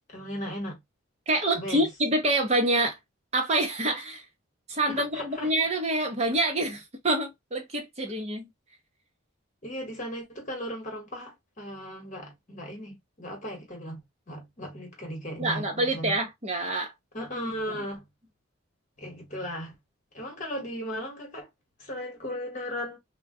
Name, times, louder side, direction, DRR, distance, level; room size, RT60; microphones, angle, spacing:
voice 1, 0.1-0.8 1.5-1.9 4.9-5.5 9.6-14.0 14.3-16.2 17.1-18.0 19.0-19.7 20.1-21.5 21.8-23.0, equal, 35° left, 1.2 m, -36 dB
voice 2, 1.3-3.0 3.3-4.2 4.7-8.5 15.4-16.9, right 1 dB, 30° right, 0.8 m, -26 dB
2.4 x 2.2 x 3.6 m
head